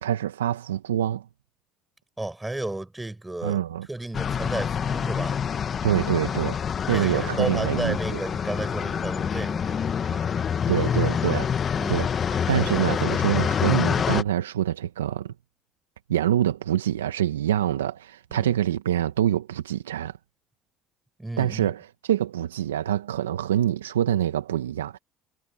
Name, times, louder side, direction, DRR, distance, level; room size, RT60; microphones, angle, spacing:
voice 1, 0.0-1.2 3.4-3.9 5.8-6.6 6.9-8.2 10.7-11.5 11.9-15.3 16.1-20.2 21.4-25.0, right 11 dB, 85° right, 1.1 m, -25 dB
voice 2, 2.2-5.4 6.2-6.6 6.9-11.1 11.8-12.0 18.3-18.6 21.2-21.7, right 2 dB, 10° right, 6.8 m, -33 dB
sound 1, 4.1-14.2, left 7 dB, 40° left, 1.4 m, -26 dB
hypercardioid pair, 60°, 0 cm